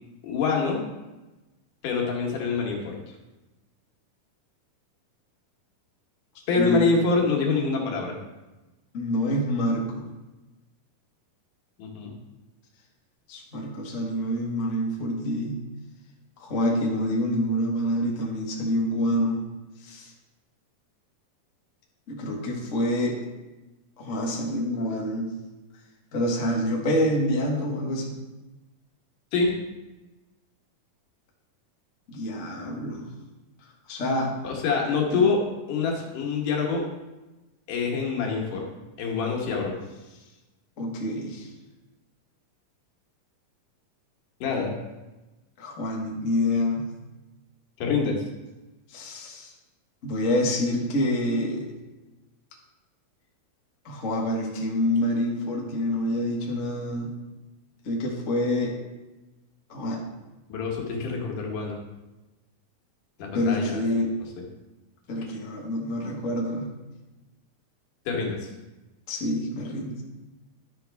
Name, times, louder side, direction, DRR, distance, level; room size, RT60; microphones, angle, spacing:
voice 1, 0.2-0.8 1.8-3.0 6.5-8.2 11.8-12.1 29.3-29.6 34.4-36.9 37.7-38.7 39.0-39.8 44.4-44.7 47.8-48.2 60.5-61.8 63.2-63.8 68.1-68.5, left 4 dB, 70° left, 0 dB, 2.8 m, -25 dB
voice 2, 6.6-6.9 8.9-9.9 13.3-15.6 16.4-19.4 19.8-20.1 22.1-23.2 24.0-25.3 26.1-28.2 32.1-33.1 33.9-34.3 35.1-35.3 40.8-41.5 45.6-46.9 48.9-49.5 50.0-51.7 53.8-57.1 57.8-58.8 59.7-60.0 63.3-64.1 65.1-66.7 69.1-70.0, left 1 dB, 55° left, -1 dB, 0.8 m, -27 dB
11.5 x 6.0 x 3.4 m, 1.1 s
omnidirectional pair, 3.9 m